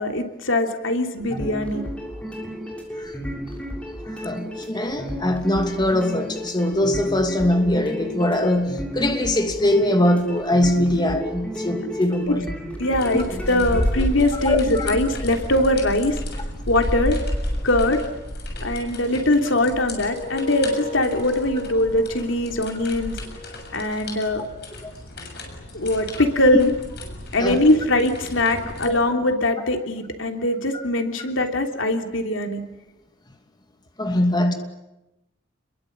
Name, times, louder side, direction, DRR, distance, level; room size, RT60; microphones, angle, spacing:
voice 1, 0.0-1.9 12.3-12.4 12.8-16.2 16.7-17.2 17.6-18.1 18.6-23.2 23.7-24.4 25.7-26.7 27.3-32.6, left 1 dB, 85° left, 3.2 m, -21 dB
sound 1, 1.2-14.1, equal, 5° left, 6.5 m, -33 dB
voice 2, 4.2-12.5 14.4-15.0 24.8-24.9 27.4-27.6 30.7-30.8 34.0-34.5, left 1 dB, 20° left, 2.6 m, -22 dB
sound 2, 13.0-28.9, left 1 dB, 60° left, 7.3 m, -32 dB
sound 3, 20.0-24.8, left 3 dB, 40° left, 4.2 m, -38 dB
29.0 x 22.5 x 8.9 m
head